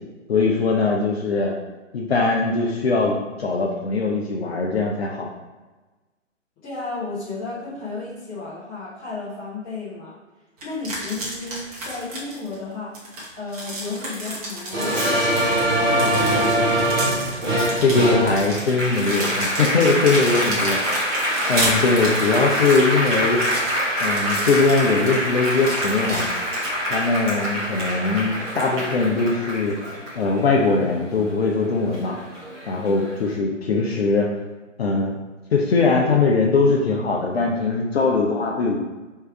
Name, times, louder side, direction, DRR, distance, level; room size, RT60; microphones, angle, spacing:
voice 1, 0.3-1.5 1.9-5.3 17.8-20.8 21.5-23.4 24.0-26.3 26.9-29.8 30.1-32.2 32.7-34.3 34.8-35.1 35.5-38.8, left 3 dB, 50° left, -1 dB, 0.7 m, -21 dB
voice 2, 6.6-10.2 10.6-13.0 13.4-16.6, left 3 dB, 15° left, -8 dB, 1.2 m, -33 dB
sound 1, 10.6-12.6 12.9-27.1, right 1 dB, 30° right, 1.2 m, -32 dB
Applause, 14.7-31.5 31.9-33.1, equal, 10° right, 0.6 m, -24 dB
3.4 x 3.2 x 4.7 m, 1.2 s
figure-of-eight pair, 135°, 38 cm